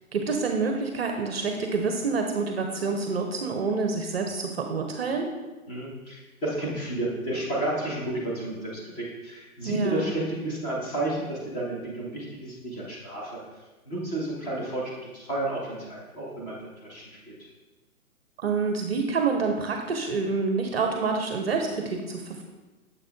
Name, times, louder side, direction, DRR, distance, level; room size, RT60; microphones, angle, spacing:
voice 1, 0.1-5.3 9.6-10.1 18.4-22.4, right 4 dB, 45° right, 4 dB, 0.6 m, -27 dB
voice 2, 5.7-13.4 13.8-17.3, right 1 dB, 25° left, -5 dB, 1.6 m, -31 dB
6.9 x 5.3 x 2.6 m, 1.2 s
hypercardioid pair, 155°, 43 cm